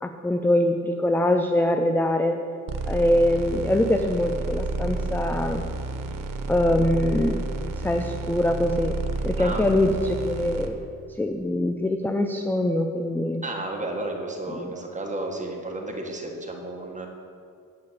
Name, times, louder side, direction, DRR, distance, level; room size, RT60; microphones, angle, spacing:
voice 1, 0.0-2.4 2.9-5.6 6.5-7.4 7.8-8.9 9.2-10.8 11.2-13.4 14.5-14.7, left 1 dB, 5° left, 5 dB, 0.4 m, -23 dB
sound 1, 2.7-10.7, right 2 dB, 85° right, 1.0 m, -30 dB
voice 2, 13.4-17.1, right 2 dB, 20° right, 0 dB, 1.5 m, -32 dB
9.7 x 5.8 x 8.4 m, 2.4 s
wide cardioid pair, 135°, 33 cm